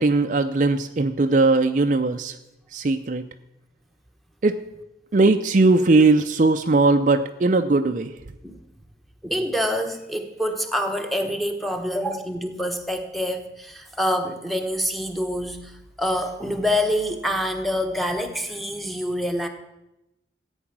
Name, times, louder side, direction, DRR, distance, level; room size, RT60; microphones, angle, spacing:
voice 1, 0.0-2.4 2.7-3.2 4.4-4.6 5.1-8.1, right 3 dB, 45° right, 7 dB, 0.5 m, -19 dB
voice 2, 9.2-19.5, equal, ahead, 3 dB, 1.2 m, -26 dB
14.0 x 8.8 x 6.0 m, 0.92 s
head